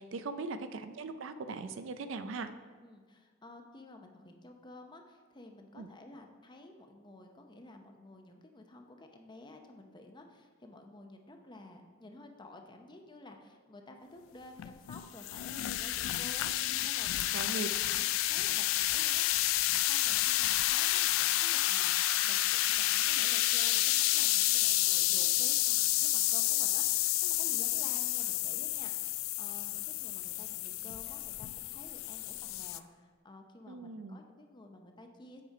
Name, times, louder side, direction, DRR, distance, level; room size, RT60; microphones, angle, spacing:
voice 1, 0.0-2.5 5.8-5.9 17.3-17.7 33.7-34.2, right 3 dB, 70° right, 10 dB, 0.4 m, -39 dB
voice 2, 2.8-17.6 17.9-35.4, left 2 dB, 25° left, 4 dB, 0.7 m, -52 dB
sound 1, 14.6-32.8, left 16 dB, 85° left, 0.3 m, -30 dB
8.1 x 4.9 x 4.8 m, 1.5 s
head